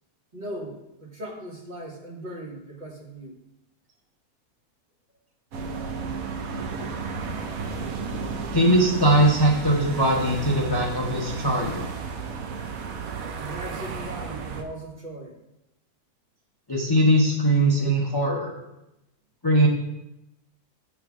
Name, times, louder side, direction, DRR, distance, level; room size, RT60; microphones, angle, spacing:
voice 1, 0.3-3.4 13.4-15.4, right 1 dB, 30° right, -2 dB, 1.2 m, -38 dB
sound 1, 5.5-14.6, right 5 dB, 65° right, 1.2 m, -33 dB
voice 2, 8.5-11.9 16.7-18.5 19.4-19.7, right 1 dB, 25° left, -2 dB, 0.6 m, -20 dB
7.9 x 3.8 x 5.9 m, 0.92 s
omnidirectional pair, 1.6 m